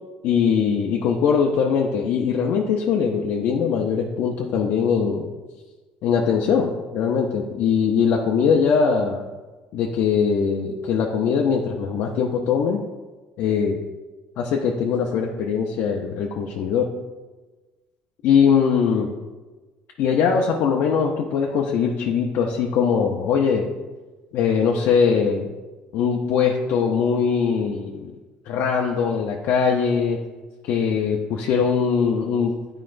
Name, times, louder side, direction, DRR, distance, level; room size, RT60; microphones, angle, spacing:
voice 1, 0.2-5.3 6.0-9.2 9.7-12.8 13.4-13.8 14.4-16.9 18.2-19.1 20.0-23.7 24.3-25.5 25.9-28.1 28.5-30.2 30.6-32.5, left 6 dB, 60° left, 0 dB, 0.6 m, -21 dB
9.6 x 4.8 x 2.5 m, 1.3 s
cardioid pair, 145°, 4 cm